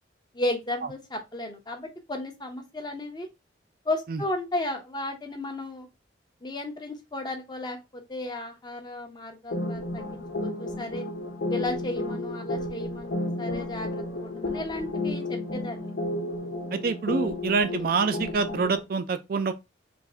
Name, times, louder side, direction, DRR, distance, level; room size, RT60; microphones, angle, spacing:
voice 1, 0.3-3.3 3.8-5.9 6.4-11.0 11.5-15.9 17.7-17.8, left 1 dB, 25° left, 0.7 m, -34 dB
sound 1, 9.5-18.8, left 2 dB, 80° left, 0.9 m, -32 dB
voice 2, 16.7-19.5, right 5 dB, 50° right, 0.3 m, -26 dB
3.4 x 2.6 x 3.3 m
head